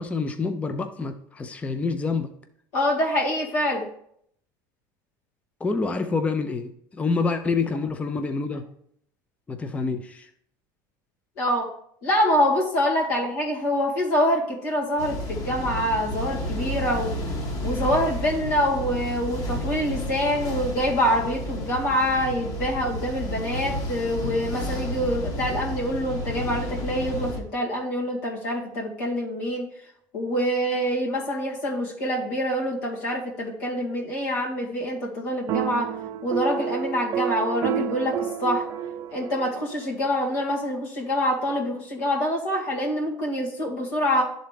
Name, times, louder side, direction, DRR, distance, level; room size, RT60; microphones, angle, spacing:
voice 1, 0.0-2.3 5.6-8.6 9.5-10.3, left 4 dB, 15° left, 7 dB, 0.5 m, -27 dB
voice 2, 2.7-3.9 11.4-11.7 12.0-17.2 17.6-29.7 30.1-35.9 36.2-38.6 39.1-44.2, equal, 85° left, -2 dB, 2.1 m, -25 dB
sound 1, 15.0-27.4, left 1 dB, 40° left, 1.3 m, -31 dB
sound 2, 35.5-39.9, right 8 dB, 45° right, 0.5 m, -30 dB
10.5 x 3.9 x 3.3 m, 0.68 s
supercardioid pair, 110°, 9 cm